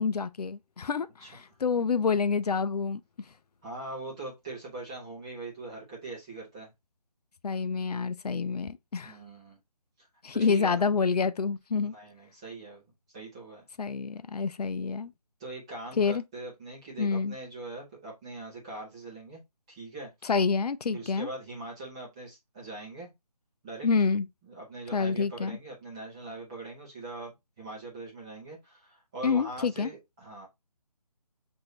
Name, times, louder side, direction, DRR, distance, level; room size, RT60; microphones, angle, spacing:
voice 1, 0.0-3.0 7.4-9.2 10.2-11.9 13.8-15.1 16.0-16.2 17.0-17.4 20.2-21.3 23.8-24.3 24.9-25.6 29.2-29.9, left 5 dB, 70° left, 0.4 m, -28 dB
voice 2, 3.6-6.7 9.0-9.6 10.0-10.1 10.3-10.9 11.8-12.8 13.1-13.7 15.4-19.4 19.7-20.1 20.9-23.1 23.6-23.9 24.4-27.3 27.6-30.5, right 2 dB, 10° right, 0.7 m, -41 dB
6.1 x 2.6 x 3.0 m
figure-of-eight pair, 170°, 21 cm